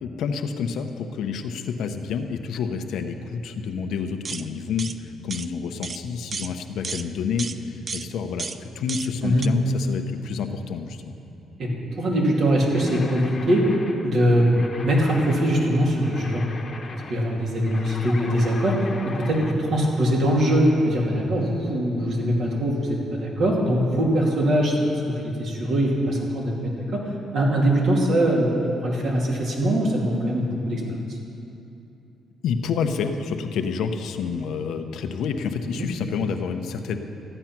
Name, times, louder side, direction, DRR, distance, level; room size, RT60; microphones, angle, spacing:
voice 1, 0.0-11.1 32.4-37.0, left 6 dB, 80° left, 6 dB, 0.8 m, -29 dB
sound 1, 4.2-4.5 4.8-5.0 5.3-5.5 5.8-6.0 6.3-6.5 6.8-7.1 7.4-7.6 7.9-8.1 8.4-8.6 8.9-9.1 9.4-9.5, right 5 dB, 40° right, 0.4 m, -32 dB
voice 2, 12.0-13.6 14.0-14.5 14.8-16.6 17.1-18.9 19.1-24.9 25.2-27.0 27.3-31.2 35.8-35.9, equal, 65° right, -2 dB, 2.6 m, -22 dB
sound 2, 12.7-19.6, left 4 dB, 40° left, 1.1 m, -39 dB
13.5 x 9.0 x 5.9 m, 2.8 s
cardioid pair, 90°, 0 cm